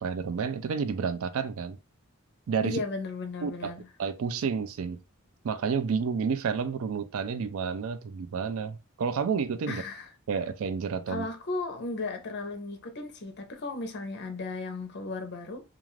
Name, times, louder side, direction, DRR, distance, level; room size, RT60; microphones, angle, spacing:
voice 1, 0.0-1.8 2.5-2.8 3.4-3.7 4.0-5.0 5.4-9.8 10.3-11.3, right 6 dB, 65° right, 0.4 m, -30 dB
voice 2, 2.6-3.9 9.7-10.1 11.1-15.6, left 3 dB, 50° left, 0.7 m, -35 dB
2.4 x 2.4 x 3.1 m
head